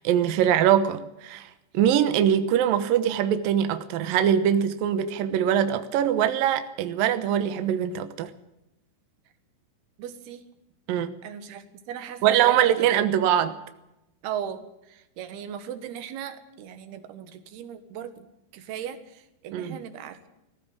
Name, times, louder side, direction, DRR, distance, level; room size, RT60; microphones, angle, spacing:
voice 1, 0.0-1.5 1.7-8.3 10.9-11.2 12.2-13.6 19.5-19.8, right 10 dB, 80° right, 10 dB, 2.0 m, -22 dB
voice 2, 10.0-10.4 11.2-12.9 14.2-18.3 18.5-20.3, right 9 dB, 65° right, 10 dB, 3.0 m, -38 dB
20.0 x 15.0 x 8.8 m, 0.89 s
omnidirectional pair, 5.7 m